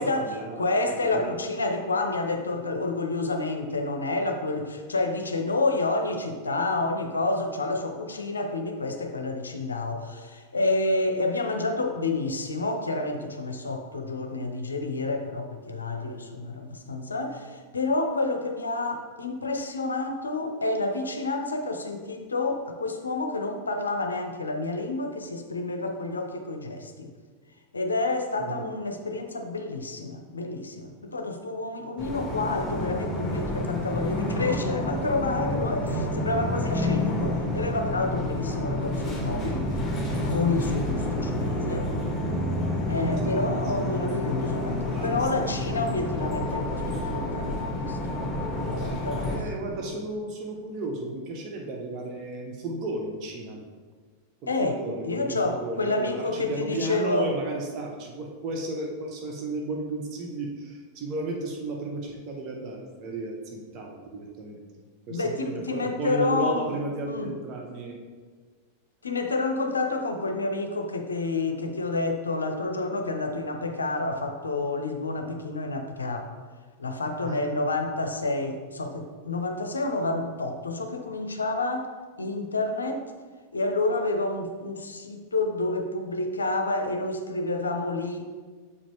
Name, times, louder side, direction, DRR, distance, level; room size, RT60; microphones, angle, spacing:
voice 1, 0.0-0.7 1.0-1.3 28.4-28.7 43.2-43.9 44.7-45.2 48.8-53.6 54.4-64.6 65.1-68.0 77.2-77.6, right 2 dB, 40° right, 0 dB, 0.9 m, -34 dB
voice 2, 0.6-27.1 27.7-39.7 40.2-41.9 42.9-48.0 48.4-49.4 49.7-49.8 54.5-57.3 65.1-66.7 67.1-67.3 69.0-76.3 76.8-81.9 82.2-83.1 83.5-88.3, left 2 dB, 75° left, 6 dB, 0.6 m, -29 dB
sound 1, 32.0-49.4, left 1 dB, 15° left, 1.8 m, -29 dB
6.8 x 5.0 x 3.4 m, 1.5 s
figure-of-eight pair, 90°, 0 cm